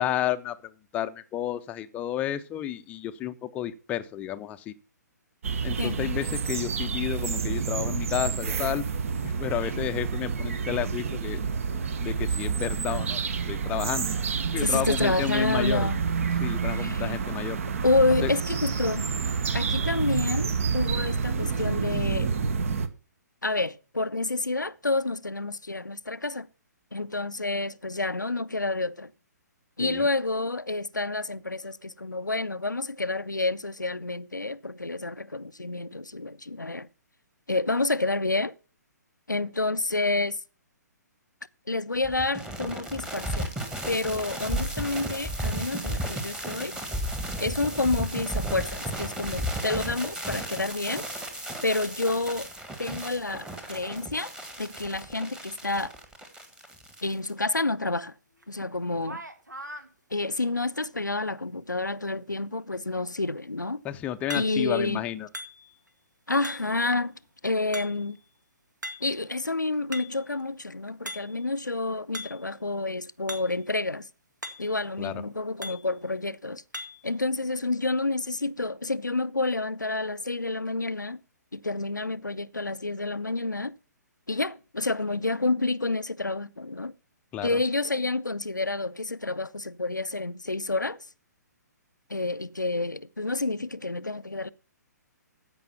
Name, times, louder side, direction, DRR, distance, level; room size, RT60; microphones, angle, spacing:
voice 1, 0.0-4.7 5.6-8.9 9.2-11.4 12.0-13.2 13.5-14.1 14.5-15.9 16.4-17.6 18.2-18.3 29.8-30.1 63.8-65.3 75.0-75.2 87.3-87.6, left 12 dB, 15° left, 0.6 m, -31 dB
sound 1, 5.4-22.9, right 5 dB, 50° right, 1.0 m, -29 dB
voice 2, 14.6-16.0 16.8-17.1 17.8-19.1 19.5-22.3 23.4-26.5 26.9-29.1 29.8-36.9 37.5-38.5 39.3-40.4 41.7-43.5 43.9-46.8 47.4-51.1 51.6-52.5 52.8-54.3 54.6-55.9 57.0-58.1 58.5-59.2 60.1-63.8 64.3-65.0 66.3-68.2 69.0-74.1 74.6-76.6 77.0-81.2 81.5-83.8 84.3-86.9 87.4-91.0 92.1-94.5, left 2 dB, 90° left, 0.5 m, -29 dB
sound 2, 42.0-57.3, right 1 dB, 5° right, 1.5 m, -34 dB
sound 3, 58.4-58.5 59.0-59.9 64.3-64.8 65.3-65.9 66.4-66.9 67.7-68.2 68.8-69.2 69.7-70.3 71.1-71.5 72.1-72.5 73.3-73.6 73.9-74.0 74.4-74.8 75.6-75.9 76.7-77.1, equal, 80° right, 1.7 m, -40 dB
15.0 x 5.4 x 5.6 m
figure-of-eight pair, 130°, 10 cm